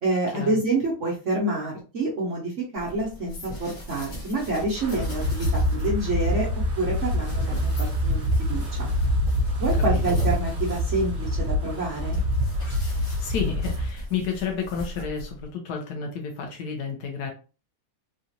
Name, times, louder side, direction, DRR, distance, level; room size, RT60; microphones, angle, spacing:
voice 1, 0.0-6.5 6.8-8.9 9.6-12.2, right 2 dB, 55° right, -3 dB, 0.9 m, -28 dB
sound 1, 2.8-15.5, equal, 40° left, 1.3 m, -40 dB
Wind, 4.8-13.9, equal, 30° right, 1.3 m, -25 dB
voice 2, 13.0-17.3, left 6 dB, 65° left, 1 dB, 1.1 m, -31 dB
3.9 x 2.4 x 2.8 m, 0.33 s
omnidirectional pair, 2.3 m